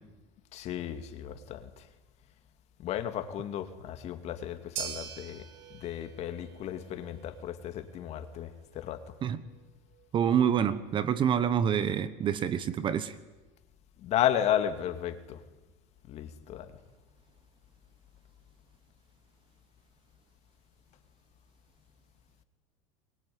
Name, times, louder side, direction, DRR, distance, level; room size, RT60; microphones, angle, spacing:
voice 1, 0.5-1.6 2.8-5.4 5.8-8.5 8.7-9.0 14.0-15.4 16.1-16.7, left 10 dB, 45° left, 2.4 m, -33 dB
sound 1, 4.8-13.1, right 9 dB, 80° right, 5.0 m, -47 dB
voice 2, 10.1-13.1, right 8 dB, 30° right, 1.2 m, -27 dB
22.5 x 22.5 x 9.6 m
supercardioid pair, 140°, 16 cm